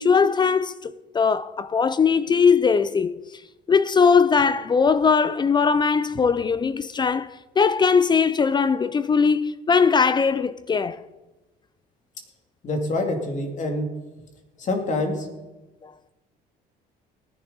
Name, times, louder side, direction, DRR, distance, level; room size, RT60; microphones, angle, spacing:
voice 1, 0.0-3.1 3.7-11.0 15.8-15.9, left 5 dB, 25° left, 0.4 m, -20 dB
voice 2, 12.6-13.9 14.6-15.3, left 2 dB, 45° left, 2.6 m, -26 dB
18.0 x 10.5 x 3.9 m
cardioid pair, 110°, 17 cm